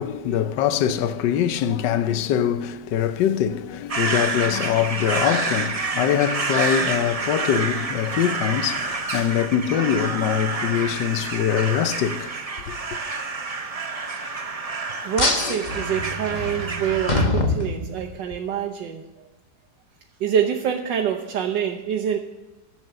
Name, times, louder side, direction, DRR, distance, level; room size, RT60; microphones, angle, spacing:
voice 1, 0.0-12.3 12.7-12.8, left 9 dB, 80° left, 1.3 m, -23 dB
sound 1, 3.9-17.3, right 3 dB, 35° right, 0.6 m, -28 dB
voice 2, 15.0-19.0 20.2-22.2, right 8 dB, 90° right, 1.6 m, -26 dB
sound 2, 15.2-18.4, left 2 dB, 30° left, 1.0 m, -25 dB
11.5 x 7.9 x 7.5 m
omnidirectional pair, 1.9 m